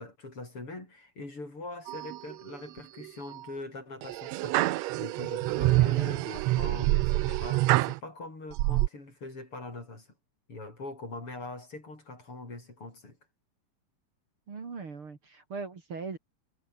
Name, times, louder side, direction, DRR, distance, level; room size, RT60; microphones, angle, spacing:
voice 1, 0.0-10.1 10.5-13.2, left 2 dB, 45° left, 8.3 m, -42 dB
sound 1, 1.9-2.6 3.0-3.4 4.0-8.0 8.5-8.9, right 18 dB, 75° right, 1.7 m, -27 dB
voice 2, 14.5-16.2, right 4 dB, 45° right, 3.6 m, -39 dB
omnidirectional pair, 3.3 m